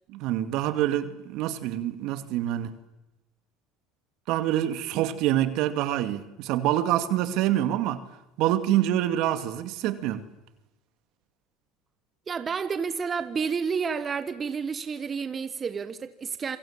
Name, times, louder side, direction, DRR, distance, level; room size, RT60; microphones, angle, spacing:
voice 1, 0.1-2.7 4.3-8.0 8.4-10.2, right 12 dB, 65° right, 2.3 m, -26 dB
voice 2, 12.3-16.6, right 6 dB, 30° right, 1.4 m, -30 dB
27.5 x 25.0 x 7.4 m
supercardioid pair, 90°, 0 cm